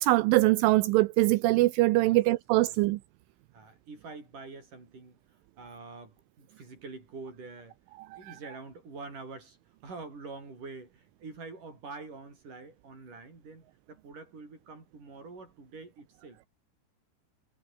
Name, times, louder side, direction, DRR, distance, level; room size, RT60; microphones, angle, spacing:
voice 1, 0.0-3.0, right 19 dB, 80° right, 3.0 m, -23 dB
voice 2, 3.5-7.8 8.2-9.6 9.8-16.5, right 3 dB, 40° right, 8.6 m, -46 dB
omnidirectional pair, 5.9 m